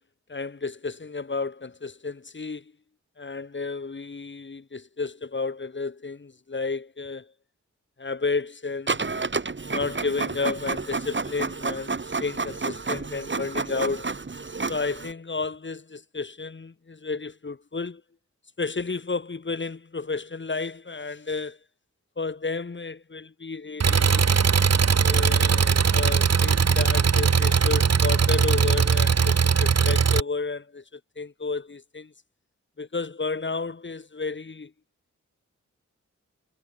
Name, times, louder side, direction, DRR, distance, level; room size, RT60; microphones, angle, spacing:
voice 1, 0.3-2.7 3.2-7.3 8.0-9.2 9.7-14.1 14.7-18.0 18.6-21.6 22.2-24.2 25.0-32.1 32.8-34.7, left 4 dB, 40° left, 1.6 m, -32 dB
Printer, 8.9-15.1, right 4 dB, 40° right, 2.6 m, -30 dB
Engine, 23.8-30.2, right 6 dB, 60° right, 1.4 m, -20 dB
wide cardioid pair, 85°, 29 cm